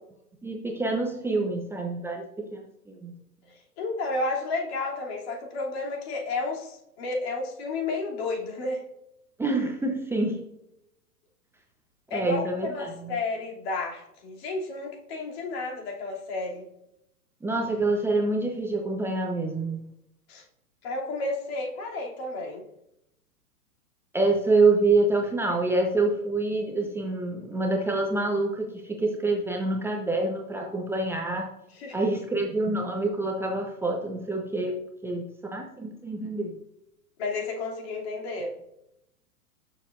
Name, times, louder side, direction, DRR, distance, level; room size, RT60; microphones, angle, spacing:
voice 1, 0.4-3.1 9.4-10.4 12.1-12.7 13.0-13.1 17.4-19.9 24.1-31.5 31.9-35.2 35.5-36.5, right 2 dB, 5° right, 1 dB, 0.9 m, -26 dB
voice 2, 3.5-8.8 12.1-16.6 20.3-20.4 20.8-22.6 31.7-32.0 37.2-38.5, left 3 dB, 40° left, -1 dB, 3.1 m, -32 dB
18.5 x 7.0 x 2.6 m, 0.82 s
figure-of-eight pair, 105°, 46 cm